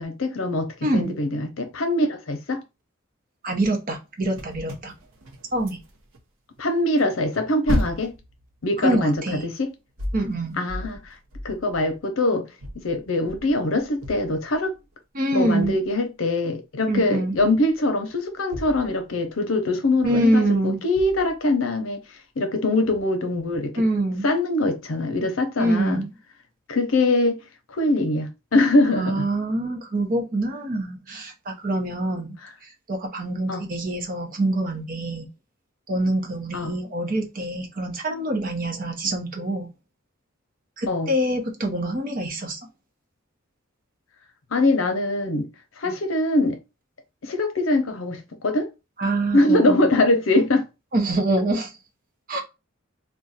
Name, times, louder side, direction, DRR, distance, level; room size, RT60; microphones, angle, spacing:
voice 1, 0.0-2.6 6.6-8.2 8.6-9.1 9.4-9.7 10.6-11.1 11.4-12.5 12.8-14.7 15.3-22.0 22.4-23.7 24.2-26.0 26.7-27.4 27.7-29.3 32.4-32.5 33.5-33.6 36.5-36.8 40.9-41.1 44.5-45.5 45.8-46.6 47.2-48.7 49.3-50.7, left 2 dB, 80° left, 0.7 m, -23 dB
voice 2, 0.8-1.2 3.4-4.9 5.5-5.8 8.8-9.4 10.1-10.6 15.1-15.8 16.9-17.4 20.0-20.8 23.8-24.3 25.6-26.1 28.9-32.4 32.9-35.3 35.9-39.7 40.8-42.6 45.8-45.9 49.0-49.9 50.9-51.7 52.3-52.4, right 1 dB, 45° right, 0.7 m, -25 dB
sound 1, 4.3-6.2 6.6-12.1 12.6-14.8 15.6-15.9 16.9-17.8 18.1-19.5 20.4-20.5 20.9-21.5 22.8-23.1, equal, 90° right, 0.7 m, -35 dB
2.4 x 2.2 x 4.0 m
head